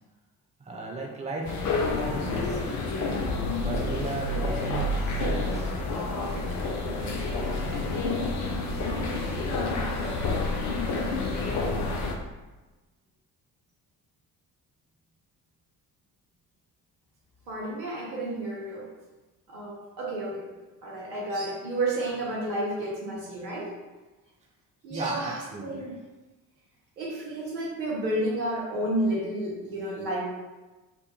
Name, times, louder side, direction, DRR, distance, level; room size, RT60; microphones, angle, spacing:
voice 1, 0.6-1.5 1.9-2.8 3.6-5.7 6.1-6.6 6.9-7.3 24.9-26.0, right 2 dB, 15° right, -2 dB, 0.5 m, -36 dB
sound 1, 1.4-12.1, left 2 dB, 40° left, 0.5 m, -29 dB
voice 2, 17.5-18.9 19.5-20.5 20.8-23.7 24.8-25.9 27.0-30.2, right 1 dB, 75° right, -5 dB, 0.7 m, -31 dB
2.5 x 2.2 x 2.7 m, 1.2 s
figure-of-eight pair, 45°, 49 cm